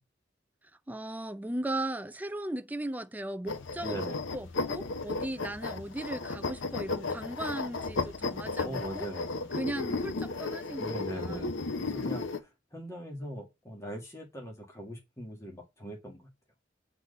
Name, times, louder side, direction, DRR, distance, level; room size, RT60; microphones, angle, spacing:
voice 1, 0.9-4.0 4.3-9.1 9.5-11.4, right 1 dB, 10° right, 0.5 m, -37 dB
sound 1, 3.5-12.4, left 3 dB, 90° left, 0.9 m, -34 dB
voice 2, 3.8-4.2 8.6-9.5 10.8-16.3, equal, 15° left, 1.9 m, -41 dB
7.7 x 4.1 x 6.6 m
head